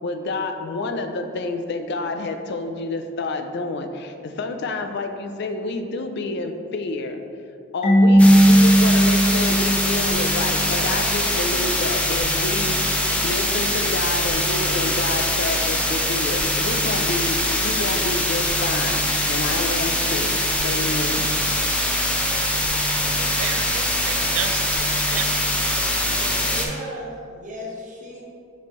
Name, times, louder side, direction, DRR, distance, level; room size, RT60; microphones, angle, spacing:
voice 1, 0.0-7.2 7.7-21.3, left 2 dB, 60° left, 6 dB, 0.4 m, -29 dB
Marimba xylophone / Wood, 7.8-10.6, equal, 40° left, 1.1 m, -16 dB
sound 1, 8.2-26.6, left 1 dB, 5° left, 0.5 m, -23 dB
voice 2, 23.2-25.2, right 8 dB, 75° right, 8 dB, 0.3 m, -32 dB
voice 3, 26.0-28.2, equal, 40° right, -2 dB, 1.0 m, -36 dB
6.9 x 4.4 x 3.1 m, 2.4 s
head